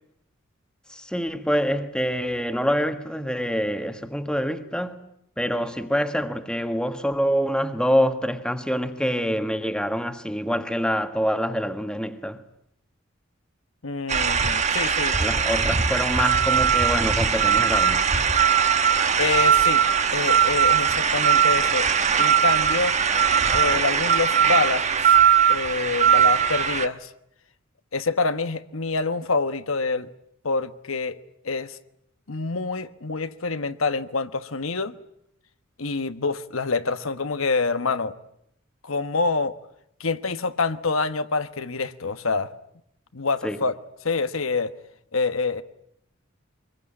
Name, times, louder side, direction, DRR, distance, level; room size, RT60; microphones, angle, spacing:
voice 1, 0.9-5.0 5.4-12.4 15.2-18.1 43.4-43.6, equal, 5° left, 1.6 m, -26 dB
voice 2, 13.8-15.2 19.2-19.8 20.1-21.9 22.2-23.0 23.5-25.2 25.5-27.1 27.9-30.1 30.4-31.8 32.3-34.9 35.8-38.1 38.8-39.6 40.0-42.5 43.1-43.8 44.0-44.7 45.1-45.6, left 4 dB, 85° left, 1.3 m, -26 dB
sound 1, 14.1-26.9, right 7 dB, 35° right, 1.3 m, -20 dB
24.5 x 22.0 x 9.9 m
head